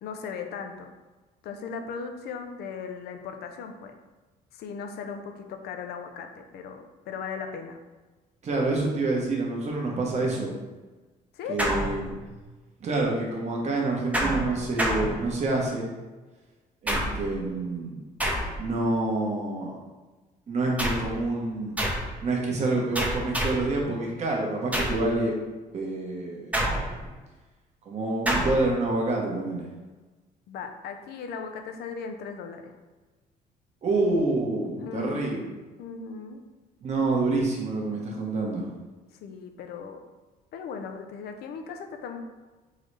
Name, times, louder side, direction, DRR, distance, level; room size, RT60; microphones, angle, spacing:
voice 1, 0.0-0.9 1.4-4.0 4.5-7.8 11.3-11.6 30.5-32.8 34.6-35.4 35.8-36.4 39.2-40.0 40.5-42.2, left 5 dB, 75° left, 6 dB, 0.6 m, -37 dB
voice 2, 8.4-10.5 11.5-12.1 12.8-15.9 16.8-18.0 18.6-19.7 20.5-21.7 22.2-25.4 25.7-26.7 27.9-29.6 33.8-35.4 36.8-38.7, right 2 dB, 40° right, -2 dB, 1.2 m, -27 dB
sound 1, 11.6-12.4 14.1-15.7 16.9-17.4 18.2-18.8 20.8-21.2 21.8-22.2 22.9-23.8 24.7-25.1 26.5-27.2 28.3-28.7, right 1 dB, 10° right, 0.8 m, -28 dB
4.0 x 3.9 x 3.3 m, 1.2 s
cardioid pair, 110°, 17 cm